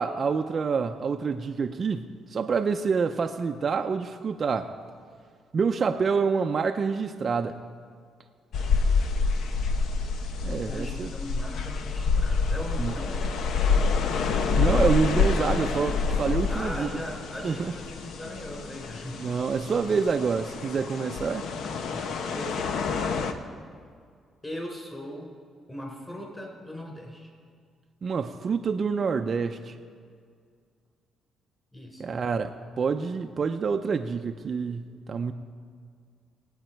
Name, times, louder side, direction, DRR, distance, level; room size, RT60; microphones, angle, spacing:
voice 1, 0.0-4.7 5.5-7.6 10.4-11.1 12.8-12.9 14.6-16.9 17.4-17.7 19.2-21.5 28.0-29.7 32.0-35.3, right 5 dB, 45° right, 6 dB, 0.6 m, -27 dB
sound 1, 8.5-23.3, left 4 dB, 75° left, 0.8 m, -27 dB
voice 2, 10.7-13.2 16.5-19.2 21.6-22.1 22.3-22.8 24.4-25.3 25.7-27.3 31.7-32.2, equal, 15° left, 0 dB, 4.2 m, -39 dB
20.0 x 8.9 x 4.5 m, 2.1 s
cardioid pair, 90°, 0 cm